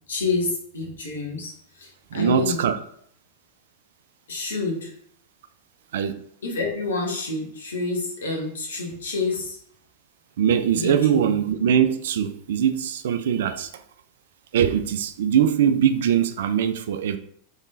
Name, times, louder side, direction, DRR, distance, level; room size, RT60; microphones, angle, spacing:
voice 1, 0.1-2.6 4.3-4.9 6.4-9.6 10.7-11.3, left 3 dB, 65° left, 0 dB, 1.3 m, -28 dB
voice 2, 2.1-2.8 5.9-6.1 10.4-13.8 14.5-17.2, right 9 dB, 60° right, 10 dB, 0.4 m, -22 dB
3.6 x 3.5 x 3.9 m, 0.66 s
figure-of-eight pair, 90°, 0 cm